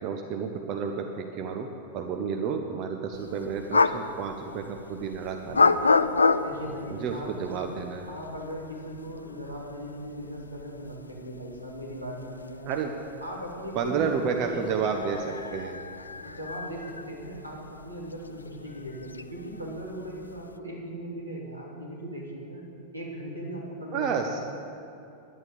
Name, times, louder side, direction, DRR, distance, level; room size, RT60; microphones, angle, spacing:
voice 1, 0.0-1.7 1.9-5.8 6.9-8.0 12.6-12.9 13.7-15.8 23.9-24.4, right 6 dB, 40° right, 4 dB, 1.0 m, -31 dB
sound 1, 3.1-20.6, left 4 dB, 80° left, 0.4 m, -31 dB
voice 2, 6.4-7.3 8.1-12.7 13.2-14.8 16.2-17.6 17.8-22.7 22.9-24.4, equal, 85° right, -4 dB, 3.5 m, -38 dB
11.0 x 11.0 x 8.4 m, 2.8 s
figure-of-eight pair, 90°, 0 cm